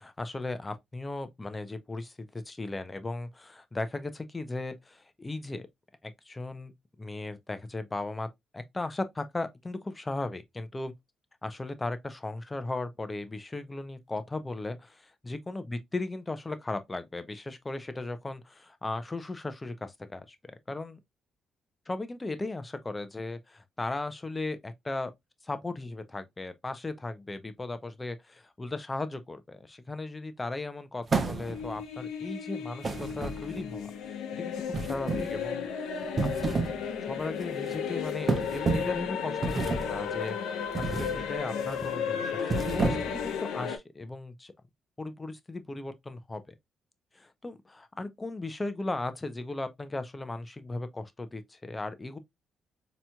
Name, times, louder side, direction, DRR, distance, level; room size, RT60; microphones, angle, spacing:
voice 1, 0.0-5.7 6.0-6.7 7.0-8.3 8.5-10.9 11.4-20.4 20.7-21.0 21.9-25.1 25.4-34.5 34.8-35.7 35.9-36.7 37.0-40.4 40.8-44.5 45.0-46.4 47.1-52.2, left 2 dB, 20° left, 0.6 m, -37 dB
sound 1, 31.1-31.8 32.8-33.7 34.7-35.4 36.0-36.8 37.2-37.4 38.3-39.0 39.4-40.0 40.7-41.2 41.6-41.9 42.4-43.3, right 3 dB, 40° right, 0.6 m, -30 dB
sound 2, 31.3-43.8, left 7 dB, 90° left, 0.7 m, -34 dB
4.1 x 2.9 x 2.2 m
cardioid pair, 90°, 0 cm